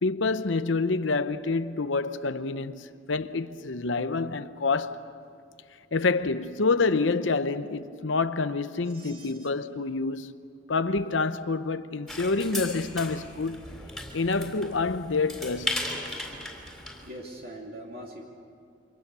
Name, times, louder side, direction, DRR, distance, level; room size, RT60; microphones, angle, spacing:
voice 1, 0.0-5.0 5.9-10.3 10.7-13.7 14.1-15.9, left 3 dB, 75° left, 0.8 m, -27 dB
voice 2, 8.8-9.5 17.0-18.3, right 1 dB, 50° right, 2.6 m, -42 dB
sound 1, 12.1-17.1, left 1 dB, ahead, 3.6 m, -36 dB
28.5 x 25.5 x 6.9 m
head